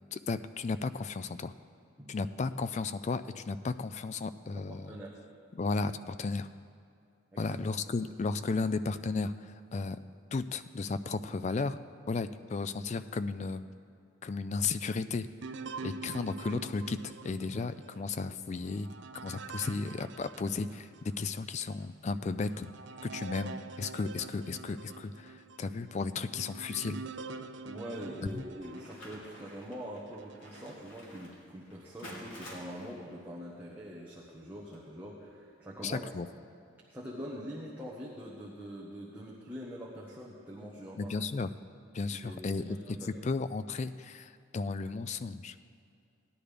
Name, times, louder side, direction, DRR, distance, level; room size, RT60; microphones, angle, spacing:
voice 1, 0.1-1.5 2.1-5.0 5.5-6.5 7.4-10.0 10.3-11.8 12.1-13.6 14.2-15.3 15.8-18.9 19.2-22.7 23.0-27.0 28.3-28.4 35.8-36.3 41.0-41.5 41.9-45.6, left 4 dB, 35° left, 12 dB, 0.3 m, -34 dB
voice 2, 4.6-5.2 7.3-7.6 27.7-36.1 36.9-41.2 42.2-43.1, equal, 10° right, -6 dB, 1.0 m, -44 dB
sound 1, 15.4-21.2 21.7-21.8 22.4-29.6 30.2-30.8, right 4 dB, 60° right, 0.4 m, -46 dB
sound 2, 28.6-35.4, left 1 dB, 70° left, 2.8 m, -52 dB
17.0 x 11.0 x 3.4 m, 2.4 s
head